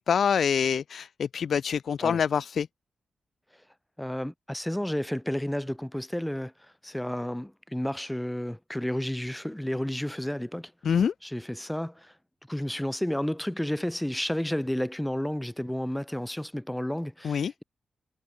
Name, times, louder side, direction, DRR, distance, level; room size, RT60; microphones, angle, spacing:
voice 1, 0.0-2.7 10.8-11.1 17.2-17.5, left 7 dB, 65° left, 0.4 m, -25 dB
voice 2, 4.0-6.5 6.8-10.7 11.2-12.1 12.5-17.6, left 1 dB, 5° left, 2.8 m, -31 dB
wide cardioid pair, 120°, 0 cm